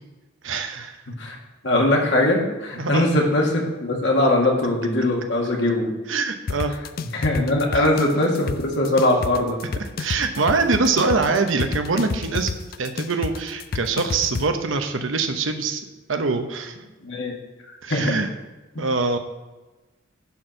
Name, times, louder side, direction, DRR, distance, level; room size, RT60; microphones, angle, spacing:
voice 1, 0.4-1.0 2.8-3.1 6.1-6.7 10.0-12.5 12.8-15.8 16.1-16.8 17.8-18.3 18.8-19.2, right 4 dB, 85° right, 6 dB, 0.9 m, -23 dB
voice 2, 1.6-5.9 7.1-9.6 17.0-17.3 17.9-18.2 18.7-18.8, left 1 dB, 65° left, -1 dB, 2.0 m, -21 dB
sound 1, 6.5-14.5, left 4 dB, 50° left, 0.4 m, -30 dB
11.0 x 4.5 x 6.4 m, 1.2 s
head